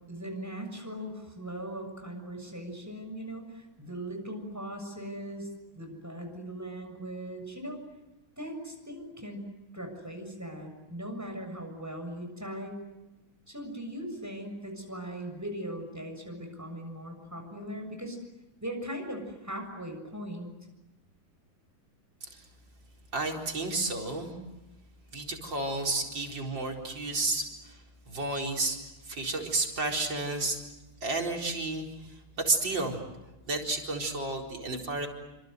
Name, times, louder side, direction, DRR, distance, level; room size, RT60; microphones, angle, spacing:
voice 1, 0.1-7.8 8.4-12.8 13.5-18.2 18.6-20.5, right 1 dB, 10° right, 4 dB, 6.9 m, -39 dB
voice 2, 23.1-24.3 25.1-28.8 29.0-30.6 31.0-33.0 33.5-35.1, right 2 dB, 65° right, 1 dB, 5.1 m, -31 dB
28.5 x 26.0 x 8.0 m, 1.0 s
omnidirectional pair, 2.1 m